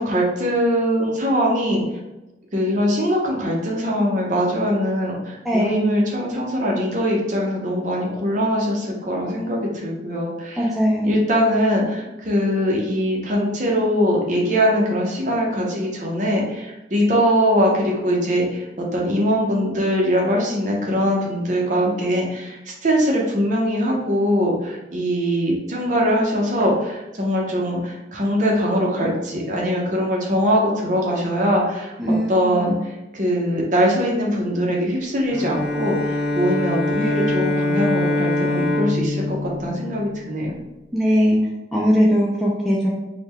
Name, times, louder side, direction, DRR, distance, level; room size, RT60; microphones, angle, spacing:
voice 1, 0.0-1.8 2.5-10.7 11.0-31.9 32.3-40.5, equal, 40° right, -2 dB, 0.7 m, -22 dB
voice 2, 5.4-5.9 10.6-11.1 32.0-32.7 40.9-41.4 41.7-42.9, equal, ahead, -5 dB, 0.3 m, -19 dB
Bowed string instrument, 35.3-40.5, left 2 dB, 60° left, 0.6 m, -23 dB
3.7 x 2.2 x 3.0 m, 1.0 s
head